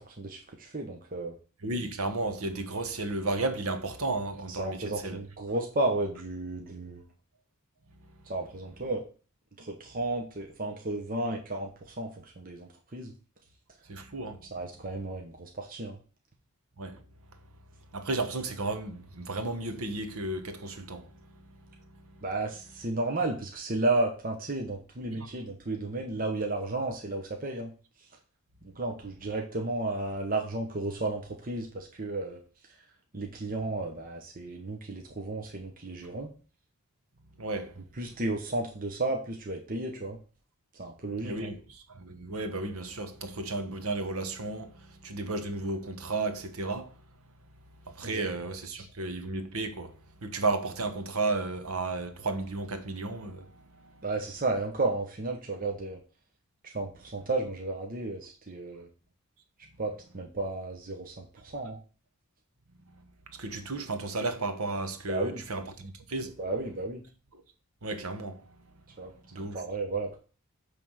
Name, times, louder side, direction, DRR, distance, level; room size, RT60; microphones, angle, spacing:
voice 1, 0.0-1.3 4.5-7.0 8.3-9.0 9.6-13.1 14.5-16.0 22.2-27.7 28.6-32.4 33.1-36.3 38.0-40.2 40.8-41.4 48.0-48.2 48.8-48.9 54.0-56.0 56.7-58.9 59.8-61.8 65.1-65.4 66.4-67.0 69.0-70.2, right 2 dB, 40° right, 1.0 m, -33 dB
voice 2, 1.6-5.2 7.9-8.3 13.9-14.5 16.8-17.0 17.9-22.2 25.2-25.3 37.3-37.9 41.2-47.0 47.8-53.5 53.9-54.0 63.3-66.4 67.3-67.4 67.8-68.5 68.9-69.0 69.3-69.6, right 2 dB, 75° right, 1.2 m, -34 dB
9.1 x 3.6 x 6.4 m
head